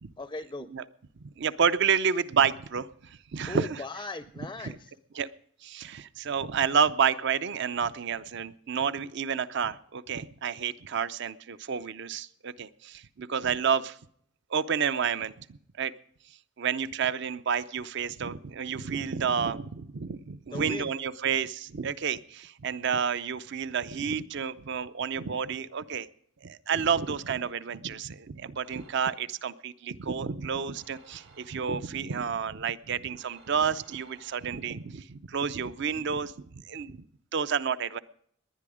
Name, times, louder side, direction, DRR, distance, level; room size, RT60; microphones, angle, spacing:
voice 1, 0.2-0.7 3.5-4.8 20.5-20.9, left 2 dB, 20° left, 12 dB, 0.4 m, -38 dB
voice 2, 1.2-3.8 4.6-4.7 5.1-5.3 5.6-14.0 14.5-15.9 16.6-26.1 26.4-37.0 37.3-38.0, right 6 dB, 55° right, 16 dB, 0.5 m, -30 dB
sound 1, 26.8-27.4 28.6-29.5 30.8-32.0 33.2-34.8, right 4 dB, 80° right, 4.1 m, -58 dB
19.0 x 10.5 x 4.9 m, 0.66 s
head